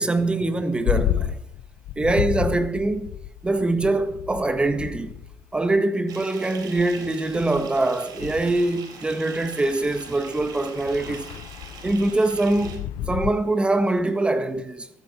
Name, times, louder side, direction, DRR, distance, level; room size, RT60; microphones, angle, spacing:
voice 1, 0.0-1.4 2.0-3.1 3.4-5.2 5.5-11.3 11.8-15.0, right 2 dB, 15° right, 1.5 m, -23 dB
sound 1, 0.9-5.8 6.8-6.9 7.3-13.3, left 11 dB, 85° left, 0.7 m, -32 dB
Bathtub (filling or washing) / Fill (with liquid), 6.1-12.8, right 6 dB, 70° right, 4.0 m, -43 dB
14.0 x 13.5 x 5.7 m
cardioid pair, 115°, 7 cm